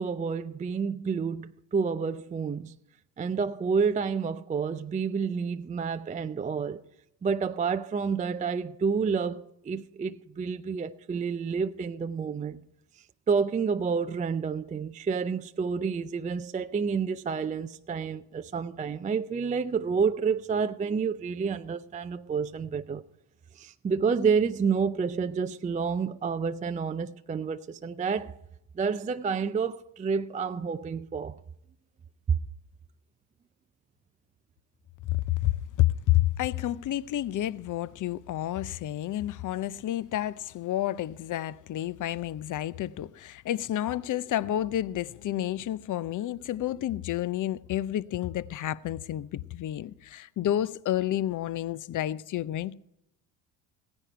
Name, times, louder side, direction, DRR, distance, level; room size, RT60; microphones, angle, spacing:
voice 1, 0.0-2.8 3.2-6.8 7.2-12.6 13.3-23.0 23.5-28.4 28.7-31.4 32.3-32.4, right 5 dB, 15° right, 0.4 m, -29 dB
voice 2, 35.1-52.7, left 13 dB, 40° left, 0.7 m, -30 dB
16.0 x 9.8 x 4.5 m
hypercardioid pair, 65°, 48 cm